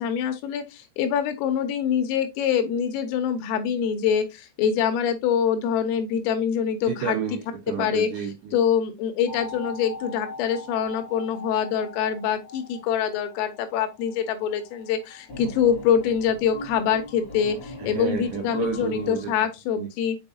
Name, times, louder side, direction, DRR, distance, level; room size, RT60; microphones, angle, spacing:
voice 1, 0.0-7.2 7.8-8.1 8.5-20.2, left 8 dB, 80° left, 3.4 m, -25 dB
voice 2, 6.8-8.6 17.8-19.3 19.8-19.9, right 7 dB, 80° right, 2.5 m, -31 dB
sound 1, 9.3-19.4, left 2 dB, 45° left, 1.1 m, -41 dB
7.0 x 5.2 x 2.6 m
omnidirectional pair, 6.0 m